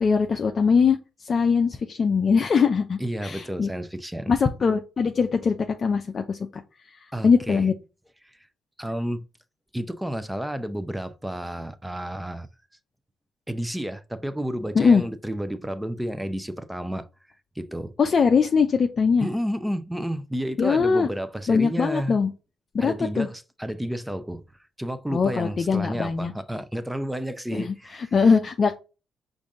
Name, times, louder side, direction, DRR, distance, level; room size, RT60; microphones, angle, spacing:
voice 1, 0.0-3.7 4.3-6.6 7.0-7.7 14.8-15.0 18.0-19.3 20.6-21.1 21.5-22.3 22.7-23.3 25.1-26.3 27.5-28.8, left 5 dB, 50° left, 0.5 m, -22 dB
voice 2, 3.0-4.4 7.1-7.7 8.2-8.4 8.8-9.3 9.7-12.5 13.5-17.1 17.6-18.0 19.2-22.2 22.8-24.4 24.8-28.1, equal, 5° right, 0.6 m, -31 dB
5.1 x 2.6 x 3.6 m
supercardioid pair, 60°, 0 cm